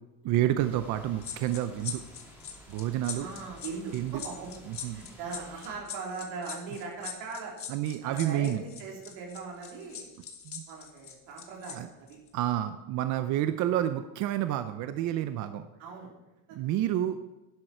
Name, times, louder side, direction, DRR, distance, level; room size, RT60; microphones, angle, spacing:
voice 1, 0.2-2.0 2.7-3.3 3.9-4.1 4.8-5.0 7.7-8.6 10.5-10.6 11.8-11.9 12.3-15.6 16.6-17.2, right 12 dB, 45° right, 10 dB, 0.6 m, -29 dB
sound 1, 0.6-5.8, equal, 5° right, 2.9 m, -52 dB
sound 2, 1.2-11.8 12.1-12.3, left 8 dB, 35° left, 1.4 m, -41 dB
voice 2, 3.1-7.6 8.0-10.1 10.7-12.2 15.8-16.1 16.5-16.6, right 4 dB, 70° right, -1 dB, 3.7 m, -40 dB
11.5 x 10.5 x 4.4 m, 1.0 s
cardioid pair, 175°, 40 cm